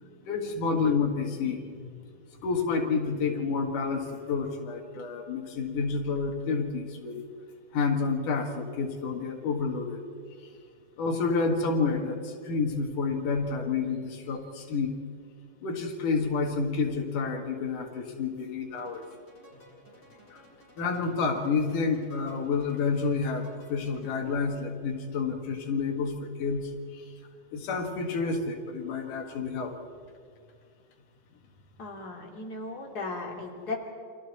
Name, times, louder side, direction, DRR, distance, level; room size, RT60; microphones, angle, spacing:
voice 1, 0.0-1.9 2.4-7.2 7.7-10.0 11.0-15.0 15.6-19.0 20.3-20.4 20.8-27.1 27.5-29.7, left 4 dB, 85° left, 2 dB, 3.4 m, -29 dB
sound 1, 18.8-24.4, left 1 dB, 15° left, 6.2 m, -55 dB
voice 2, 31.8-33.8, left 3 dB, 30° left, -1 dB, 3.2 m, -36 dB
29.5 x 26.0 x 4.2 m, 2.3 s
omnidirectional pair, 3.6 m